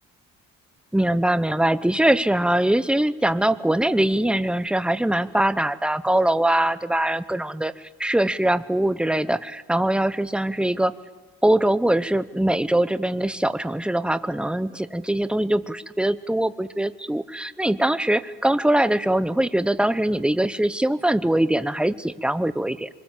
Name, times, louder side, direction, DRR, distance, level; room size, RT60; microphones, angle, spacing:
voice 1, 0.9-10.9 11.4-22.9, right 1 dB, 5° right, 14 dB, 1.0 m, -22 dB
24.5 x 21.5 x 7.4 m, 1.3 s
cardioid pair, 90°, 30 cm